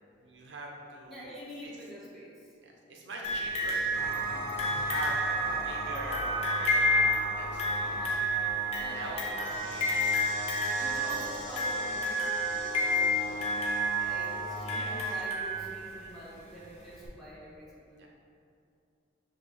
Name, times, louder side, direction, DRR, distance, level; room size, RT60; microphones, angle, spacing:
voice 1, 0.2-1.3 2.6-3.8 4.3-5.1 5.4-8.0 8.9-10.0 10.8-11.3 14.7-15.1 18.0-18.1, right 2 dB, 70° right, -1 dB, 0.5 m, -43 dB
voice 2, 1.0-2.5 3.2-3.4 7.8-8.3 8.7-9.3 10.7-12.2 12.6-13.5 14.0-18.1, equal, ahead, -9 dB, 0.8 m, -46 dB
sound 1, 3.2-16.1 17.0-17.1, equal, 30° left, 0.5 m, -30 dB
sound 2, 3.9-15.1, left 1 dB, 65° left, 1.0 m, -38 dB
6.2 x 2.3 x 2.8 m, 2.4 s
head